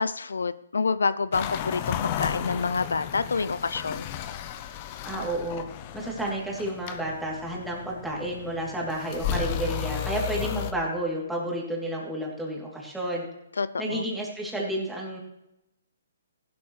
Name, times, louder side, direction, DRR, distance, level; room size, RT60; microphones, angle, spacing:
voice 1, 0.0-4.1 13.6-14.1, left 4 dB, 90° left, 16 dB, 0.5 m, -28 dB
sound 1, 1.3-10.7, left 9 dB, 35° left, 0.8 m, -34 dB
voice 2, 5.0-5.6 5.9-13.3 13.8-15.2, right 1 dB, 5° right, -4 dB, 3.0 m, -31 dB
15.0 x 12.5 x 3.2 m, 0.87 s
hypercardioid pair, 150°, 0 cm